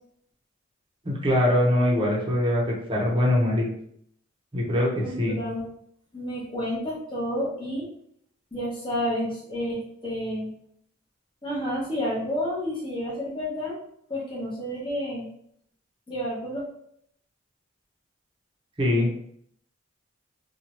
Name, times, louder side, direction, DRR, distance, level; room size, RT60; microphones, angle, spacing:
voice 1, 1.0-3.7 4.5-5.4 18.8-19.1, left 1 dB, 25° right, -3 dB, 0.7 m, -23 dB
voice 2, 5.0-5.7 6.1-7.9 8.5-10.5 11.4-13.8 14.1-15.3 16.1-16.6, equal, 25° left, -5 dB, 0.9 m, -30 dB
2.8 x 2.3 x 2.9 m, 0.68 s
head